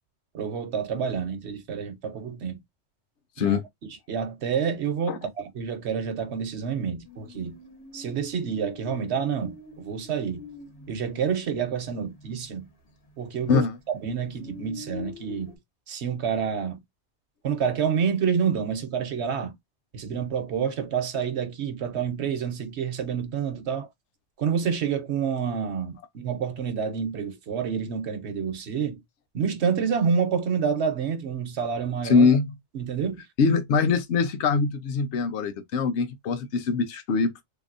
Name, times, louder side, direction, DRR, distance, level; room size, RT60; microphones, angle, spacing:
voice 1, 0.3-2.6 3.4-3.6 4.1-7.5 7.9-10.4 10.9-12.7 13.2-15.5 15.9-16.8 17.4-19.5 19.9-23.9 24.4-29.0 29.3-32.3 32.7-33.2, right 7 dB, 70° right, 1.1 m, -28 dB
sound 1, 7.0-13.3 13.5-15.6, left 4 dB, 55° left, 1.3 m, -45 dB
voice 2, 32.0-32.5 33.4-37.4, left 5 dB, 75° left, 1.0 m, -23 dB
3.6 x 2.9 x 2.5 m
omnidirectional pair, 1.2 m